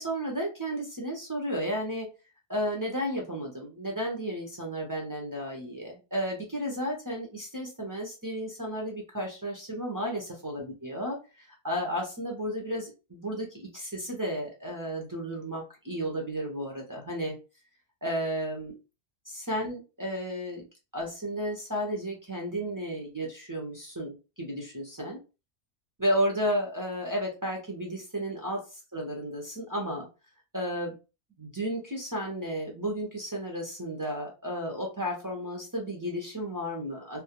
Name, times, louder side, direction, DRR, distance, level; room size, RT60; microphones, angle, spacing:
voice 1, 0.0-2.1 2.5-17.3 18.0-18.8 19.3-20.6 20.9-25.2 26.0-30.1 30.5-30.9 31.4-37.2, equal, 30° right, -2 dB, 0.4 m, -33 dB
2.3 x 2.0 x 2.9 m, 0.30 s
omnidirectional pair, 1.2 m